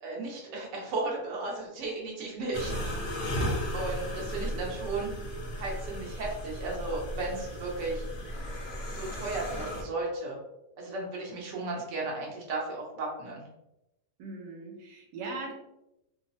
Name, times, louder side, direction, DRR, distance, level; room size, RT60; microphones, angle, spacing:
voice 1, 0.0-2.7 3.1-3.5 3.7-5.1 5.6-8.0 8.9-10.4 10.8-13.4, right 3 dB, 55° right, -2 dB, 0.9 m, -35 dB
sound 1, 2.5-9.8, equal, 55° left, 0.7 m, -35 dB
voice 2, 2.6-3.1 14.2-15.5, right 3 dB, 90° right, 1 dB, 1.2 m, -40 dB
3.0 x 2.0 x 2.6 m, 0.89 s
omnidirectional pair, 1.8 m